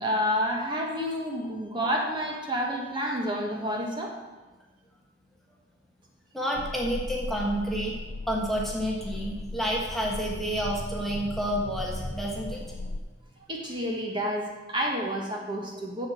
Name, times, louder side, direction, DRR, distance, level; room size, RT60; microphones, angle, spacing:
voice 1, 0.0-4.1 13.5-16.1, equal, 25° right, 0 dB, 1.4 m, -29 dB
voice 2, 6.3-7.9 8.3-12.6, equal, ahead, -3 dB, 1.3 m, -29 dB
sound 1, 6.5-13.0, left 2 dB, 65° left, 0.4 m, -37 dB
8.4 x 7.4 x 7.6 m, 1.2 s
head